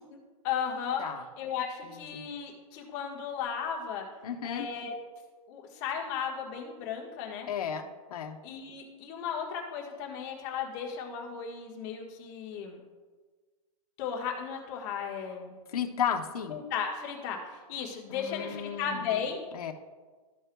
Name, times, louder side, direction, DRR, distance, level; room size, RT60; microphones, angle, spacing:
voice 1, 0.4-1.0 1.4-4.1 4.4-4.9 5.5-7.5 8.4-12.8 14.0-15.5 16.5-19.4, left 7 dB, 35° left, 0 dB, 1.4 m, -35 dB
voice 2, 1.8-2.2 4.2-4.7 7.5-8.4 15.7-16.6 18.1-19.2 19.5-19.7, left 8 dB, 90° left, 4 dB, 1.0 m, -34 dB
14.0 x 5.5 x 2.3 m, 1.4 s
hypercardioid pair, 165°, 19 cm